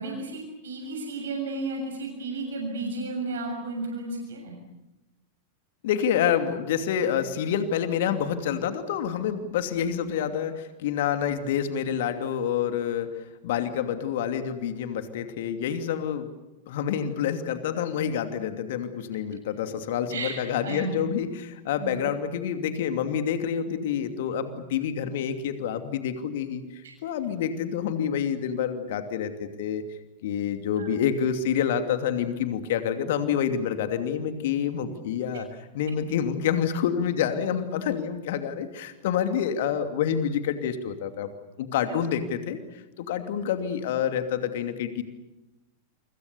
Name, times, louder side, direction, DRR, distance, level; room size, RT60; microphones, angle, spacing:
voice 1, 0.0-4.6 20.1-21.1 21.8-22.0 30.8-30.9, right 3 dB, 65° right, 1 dB, 7.0 m, -33 dB
voice 2, 5.8-16.3 16.7-29.8 30.2-35.5 35.7-41.3 41.6-45.0, left 8 dB, 55° left, 8 dB, 2.7 m, -28 dB
29.0 x 25.0 x 7.0 m, 0.97 s
figure-of-eight pair, 90°, 0 cm